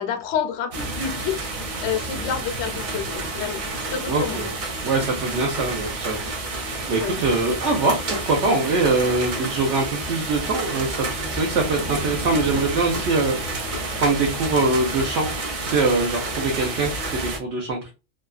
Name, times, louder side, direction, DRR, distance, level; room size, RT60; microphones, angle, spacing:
voice 1, 0.0-3.6 3.9-4.5 6.9-7.4, left 8 dB, 70° left, 0.9 m, -29 dB
sound 1, 0.7-17.4, right 2 dB, 50° right, 0.4 m, -30 dB
voice 2, 4.1-4.5 4.8-6.3 6.9-13.4 14.0-15.3 15.6-17.9, right 3 dB, 70° right, 1.0 m, -23 dB
2.8 x 2.3 x 2.3 m
omnidirectional pair, 1.3 m